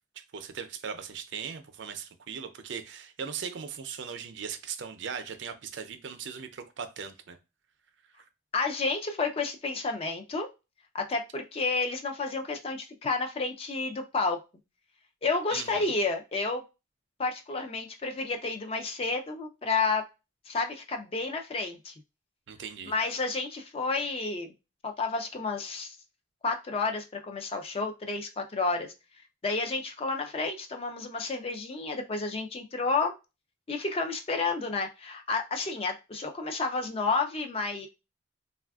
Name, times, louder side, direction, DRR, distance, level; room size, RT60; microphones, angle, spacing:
voice 1, 0.2-7.4 8.1-8.2 15.5-15.9 22.5-22.9, right 6 dB, 65° right, 0.4 m, -39 dB
voice 2, 8.5-10.5 10.9-14.4 15.2-16.6 17.2-20.0 20.5-21.9 22.9-24.5 24.8-26.0 26.4-28.9 29.4-33.1 33.7-37.9, left 3 dB, 30° left, 0.4 m, -30 dB
3.3 x 2.4 x 2.2 m
head